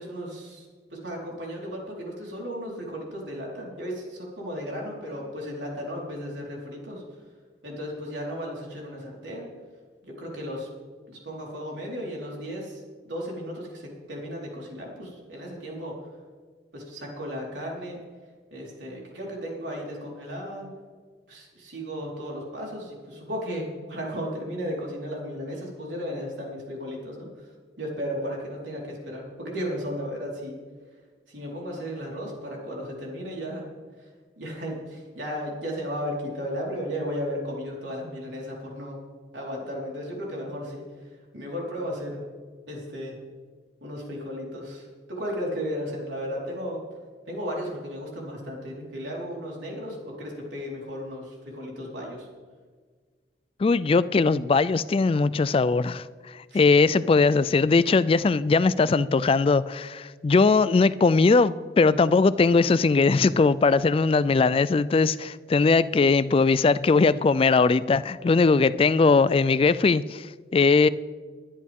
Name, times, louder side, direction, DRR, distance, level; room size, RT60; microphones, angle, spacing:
voice 1, 0.0-7.0 7.6-9.5 10.0-10.7 11.1-15.9 16.7-18.0 18.5-20.7 21.3-27.5 27.8-30.6 31.3-33.6 34.0-34.1 34.4-39.0 39.3-40.8 41.3-42.2 42.7-43.2 43.8-46.8 47.3-52.3 56.5-56.6, equal, 80° right, 4.3 m, -35 dB
voice 2, 53.6-56.1 56.5-70.3 70.5-70.9, left 4 dB, 30° left, 0.3 m, -20 dB
21.0 x 10.5 x 3.6 m
head